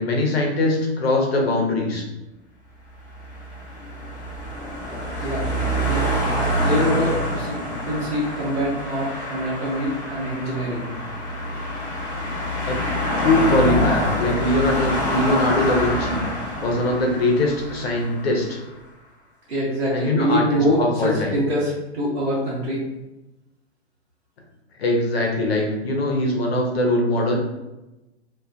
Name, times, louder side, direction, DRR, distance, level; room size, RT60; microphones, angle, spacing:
voice 1, 0.0-2.0 12.7-12.8 13.2-16.2 16.6-18.6 19.9-21.3 24.8-27.4, left 1 dB, 60° left, 0 dB, 0.7 m, -21 dB
sound 1, 3.0-18.4, equal, 10° left, 0.6 m, -26 dB
voice 2, 5.2-6.3 6.6-10.9 19.5-22.9, equal, 65° right, -6 dB, 0.9 m, -25 dB
2.4 x 2.1 x 2.4 m, 0.99 s
figure-of-eight pair, 110°, 34 cm